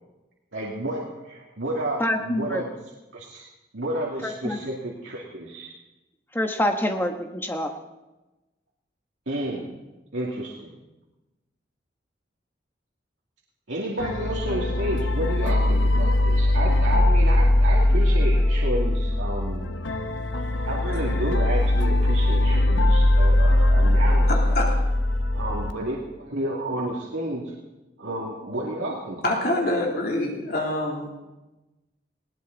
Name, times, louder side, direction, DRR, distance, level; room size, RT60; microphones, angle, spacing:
voice 1, 0.5-2.7 3.1-3.4 3.7-5.7 9.3-9.7 10.1-10.8 13.7-19.8 20.6-24.3 25.3-27.5 28.0-29.4, right 1 dB, 90° right, -3 dB, 2.4 m, -31 dB
voice 2, 2.0-2.6 4.2-4.6 6.3-7.7, left 1 dB, 10° left, 4 dB, 1.3 m, -26 dB
sound 1, 14.0-25.7, left 1 dB, 85° left, 1.1 m, -20 dB
voice 3, 29.2-31.1, left 1 dB, 55° left, -1 dB, 3.2 m, -25 dB
20.0 x 18.0 x 4.0 m, 1.0 s
head